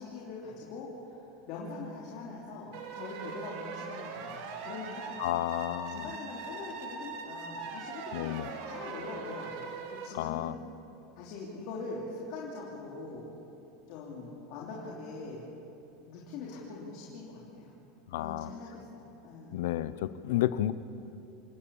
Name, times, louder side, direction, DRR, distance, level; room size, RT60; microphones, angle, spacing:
voice 1, 0.0-5.2 5.9-10.5 11.2-13.2 13.9-15.4 16.1-17.8 18.1-19.6, left 3 dB, 45° left, -4 dB, 3.1 m, -42 dB
sound 1, 2.7-10.1, right 5 dB, 55° right, 2.2 m, -41 dB
voice 2, 5.2-6.1 8.1-8.5 10.1-10.5 18.1-18.5 19.5-20.7, left 14 dB, 75° left, 15 dB, 0.8 m, -31 dB
27.0 x 18.5 x 7.2 m, 2.9 s
supercardioid pair, 175°, 0 cm